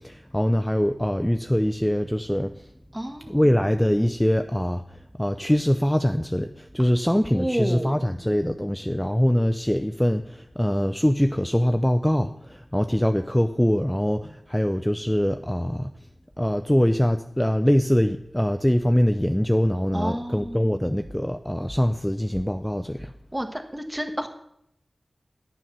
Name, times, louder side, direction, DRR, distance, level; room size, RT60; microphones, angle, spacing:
voice 1, 0.0-2.7 3.3-15.9 16.4-23.1, equal, 5° left, 7 dB, 0.5 m, -23 dB
voice 2, 2.9-3.4 7.3-8.0 19.9-20.9 23.3-24.3, equal, 15° right, 5 dB, 1.4 m, -30 dB
10.5 x 7.1 x 6.1 m, 0.76 s
wide cardioid pair, 55°, 0 cm